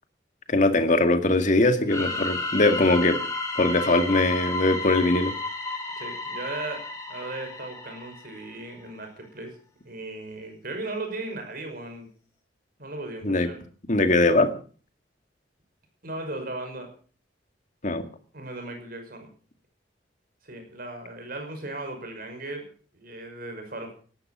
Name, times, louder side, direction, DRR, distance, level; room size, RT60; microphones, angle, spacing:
voice 1, 0.5-3.2 3.6-5.3 13.2-13.5 13.9-14.5 17.8-18.0, left 2 dB, 45° left, 7 dB, 2.1 m, -21 dB
sound 1, 1.9-8.5, left 3 dB, 15° left, 4.2 m, -32 dB
voice 2, 1.9-2.3 6.0-6.8 7.1-9.5 9.8-12.1 12.8-13.6 16.0-16.9 18.3-19.3 20.4-24.0, right 2 dB, 55° right, 5 dB, 5.7 m, -37 dB
18.0 x 11.5 x 6.2 m, 0.42 s
head